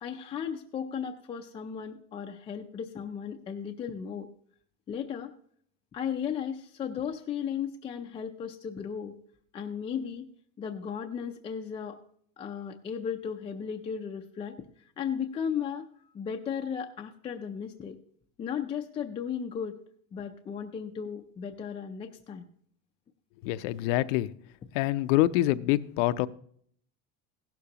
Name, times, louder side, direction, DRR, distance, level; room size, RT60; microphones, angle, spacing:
voice 1, 0.0-4.3 4.9-5.3 5.9-9.1 9.5-10.3 10.6-12.0 12.4-15.9 16.1-18.0 18.4-19.7 20.1-22.4, left 7 dB, 15° left, 3 dB, 0.4 m, -35 dB
voice 2, 23.4-24.3 24.7-26.3, left 16 dB, 85° left, 14 dB, 0.7 m, -25 dB
16.0 x 12.0 x 2.9 m, 0.63 s
cardioid pair, 170°, 36 cm